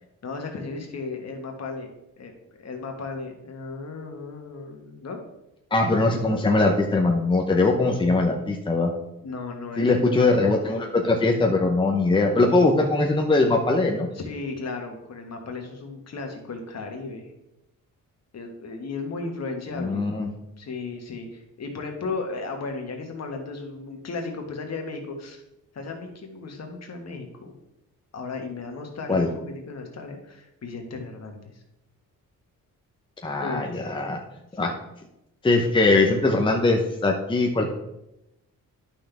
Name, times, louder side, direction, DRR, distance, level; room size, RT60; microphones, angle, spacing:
voice 1, 0.2-1.9 2.2-5.2 9.2-10.2 14.2-17.3 18.3-20.0 20.6-25.4 25.7-27.5 28.1-31.6 33.4-34.0, left 3 dB, 50° left, 3 dB, 1.7 m, -35 dB
voice 2, 5.7-8.9 9.8-14.1 19.8-20.3 29.1-29.3 33.2-34.2 34.6-34.8 35.4-37.7, left 3 dB, 15° left, 1 dB, 0.8 m, -21 dB
11.0 x 6.0 x 3.5 m, 0.90 s
cardioid pair, 110°, 33 cm